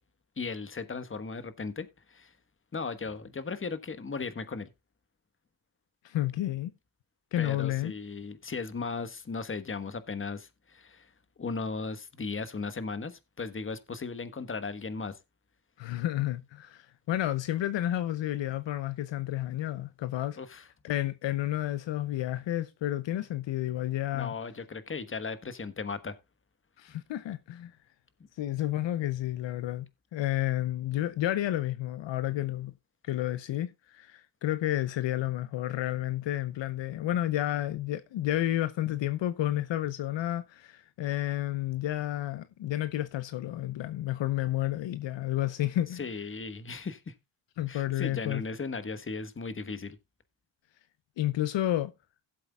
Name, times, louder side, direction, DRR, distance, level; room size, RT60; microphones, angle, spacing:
voice 1, 0.4-2.3 2.7-4.7 7.4-11.1 11.4-15.2 20.4-20.6 24.1-26.1 45.9-47.1 47.7-50.0, left 4 dB, 25° left, 1.3 m, -36 dB
voice 2, 6.0-6.7 7.3-7.9 15.8-24.3 26.8-27.7 28.4-32.7 33.0-46.0 47.6-48.4 51.2-51.9, left 13 dB, 70° left, 0.8 m, -31 dB
17.0 x 7.7 x 2.3 m
cardioid pair, 85°, 47 cm